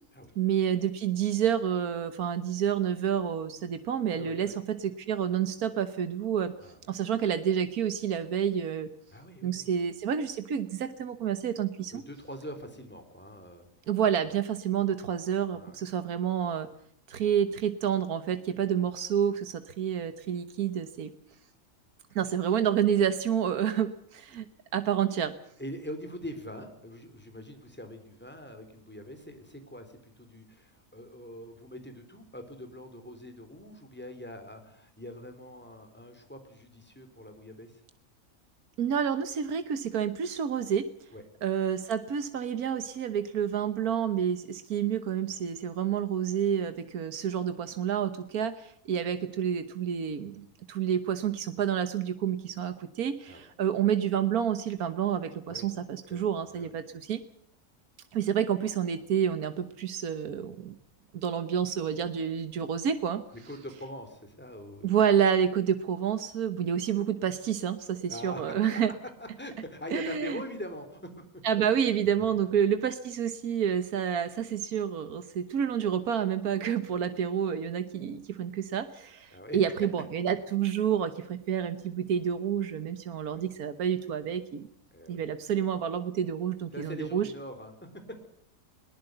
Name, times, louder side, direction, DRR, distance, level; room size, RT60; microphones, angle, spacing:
voice 1, 0.4-6.5 6.9-8.9 9.4-12.0 13.9-16.7 17.1-21.1 22.1-24.5 24.7-25.3 38.8-40.9 41.4-57.2 58.1-60.8 61.1-63.2 64.8-68.9 69.9-70.4 71.4-84.7 85.1-87.3, right 8 dB, 90° right, 10 dB, 1.6 m, -29 dB
voice 2, 4.1-4.6 6.6-6.8 9.1-9.7 11.9-13.7 14.3-14.4 15.5-15.8 24.3-24.4 25.6-37.7 41.1-41.2 53.2-53.5 55.5-55.7 56.1-56.2 56.5-56.7 63.5-64.9 68.1-68.5 69.2-71.0 79.3-79.6 83.3-83.4 84.9-85.2 86.7-87.7, left 1 dB, 5° left, 6 dB, 3.8 m, -43 dB
21.5 x 19.0 x 7.9 m, 0.66 s
omnidirectional pair, 1.5 m